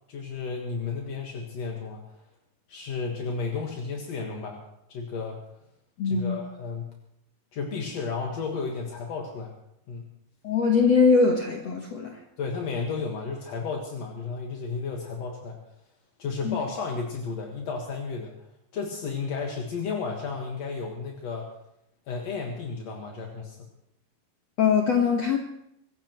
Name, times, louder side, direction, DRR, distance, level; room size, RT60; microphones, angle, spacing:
voice 1, 0.1-2.0 2.7-4.6 4.9-5.4 6.0-6.9 7.5-9.5 9.9-10.1 12.4-15.6 16.2-18.3 18.7-21.5 22.1-23.6, left 4 dB, 60° left, 0 dB, 1.8 m, -33 dB
voice 2, 6.0-6.4 10.4-12.2 16.4-16.6 24.6-25.4, left 5 dB, 75° left, 1 dB, 1.5 m, -22 dB
26.0 x 15.5 x 3.0 m, 0.77 s
omnidirectional pair, 5.1 m